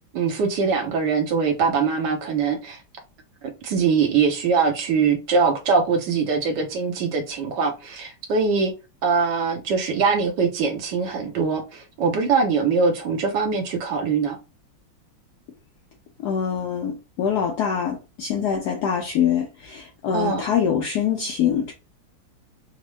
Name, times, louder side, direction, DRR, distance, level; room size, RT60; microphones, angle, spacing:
voice 1, 0.1-2.8 3.4-8.7 9.0-14.4 20.1-20.4, right 5 dB, 70° right, 1.2 m, -22 dB
voice 2, 16.2-21.7, left 8 dB, 75° left, 0.9 m, -24 dB
3.6 x 2.0 x 3.0 m
omnidirectional pair, 2.2 m